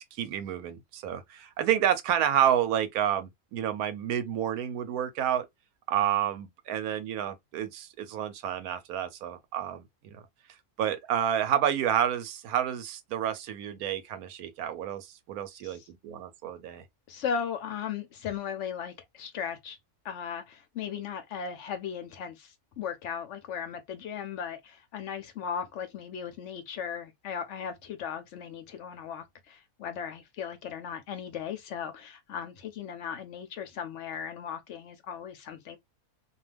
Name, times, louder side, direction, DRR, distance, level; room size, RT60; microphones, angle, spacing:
voice 1, 0.1-5.5 5.9-10.2 10.8-16.8, right 10 dB, 80° right, 1.0 m, -29 dB
voice 2, 17.1-19.8 20.0-35.8, left 7 dB, 65° left, 0.7 m, -37 dB
2.5 x 2.3 x 3.2 m
omnidirectional pair, 1.6 m